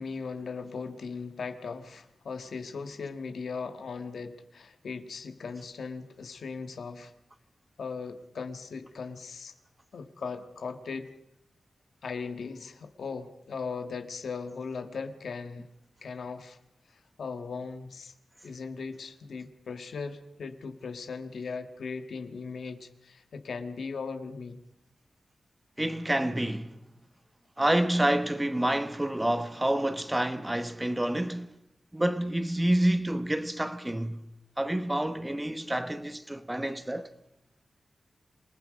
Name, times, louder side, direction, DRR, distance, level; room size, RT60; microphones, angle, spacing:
voice 1, 0.0-7.1 7.8-9.5 9.9-11.1 12.0-15.7 16.0-16.6 16.9-18.1 18.4-24.6, left 5 dB, 80° left, 1.6 m, -38 dB
voice 2, 25.8-26.9 27.6-31.5 31.9-34.2 34.6-37.1, right 1 dB, 10° right, 1.1 m, -28 dB
28.0 x 19.5 x 5.1 m
wide cardioid pair, 130°, 0 cm